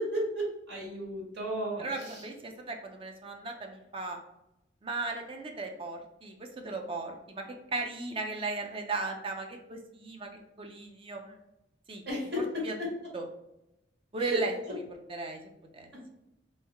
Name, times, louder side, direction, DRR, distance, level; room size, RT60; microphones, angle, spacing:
voice 1, 0.0-2.3 12.0-12.9 14.2-14.4 14.6-14.7 15.9-16.0, equal, 70° right, -3 dB, 1.4 m, -34 dB
voice 2, 1.8-4.2 4.8-7.4 7.7-11.4 11.9-12.0 12.4-12.7 13.1-13.2 14.1-14.8 15.1-15.4 15.7-15.9, right 3 dB, 30° right, 3 dB, 0.5 m, -36 dB
3.3 x 3.1 x 3.5 m, 0.88 s
head